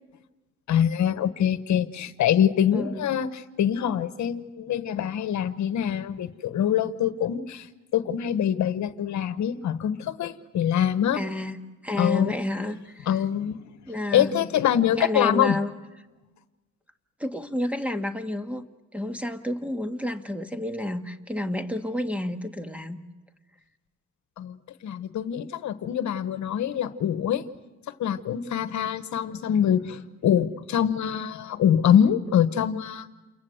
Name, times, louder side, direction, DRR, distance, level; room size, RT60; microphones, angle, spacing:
voice 1, 0.7-11.2 12.0-12.3 13.1-13.6 14.1-15.6 24.4-24.6 24.8-27.4 28.0-33.0, left 9 dB, 70° left, 12 dB, 1.2 m, -24 dB
voice 2, 2.7-3.1 11.1-13.1 13.9-14.4 14.9-15.7 17.2-18.7 18.9-23.0, left 1 dB, 5° right, 8 dB, 1.6 m, -30 dB
29.0 x 22.5 x 7.9 m, 1.2 s
cardioid pair, 90°, 30 cm